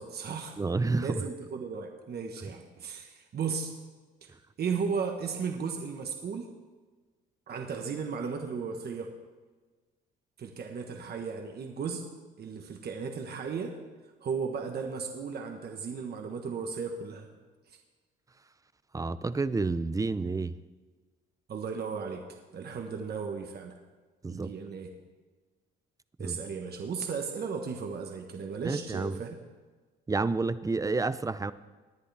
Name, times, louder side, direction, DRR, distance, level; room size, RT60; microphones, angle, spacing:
voice 1, 0.0-0.5 0.9-3.7 4.6-6.5 7.5-9.1 10.4-12.0 12.4-13.8 14.2-17.3 17.7-17.8 21.5-22.2 22.5-23.7 24.3-24.9 26.2-29.4, right 5 dB, 55° right, 3 dB, 1.3 m, -35 dB
voice 2, 0.6-1.1 18.9-20.5 24.2-24.5 26.2-26.4 28.6-29.2 30.1-31.5, right 3 dB, 15° right, 15 dB, 0.5 m, -29 dB
19.0 x 10.5 x 3.4 m, 1.4 s
cardioid pair, 90°, 20 cm